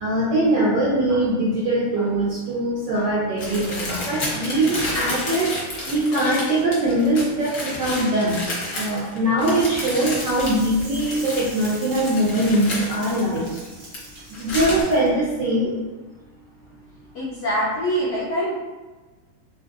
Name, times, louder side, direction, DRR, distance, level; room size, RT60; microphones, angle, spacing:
voice 1, 0.0-8.4 8.7-13.7 14.3-15.8, right 1 dB, 75° right, -6 dB, 1.0 m, -22 dB
sound 1, 3.4-14.0 14.3-14.8, left 1 dB, 50° left, 1.1 m, -31 dB
sound 2, 10.1-15.1, right 1 dB, 55° right, 0.6 m, -40 dB
voice 2, 17.1-18.5, equal, 80° left, -7 dB, 0.8 m, -24 dB
3.5 x 2.5 x 2.4 m, 1.3 s
omnidirectional pair, 2.4 m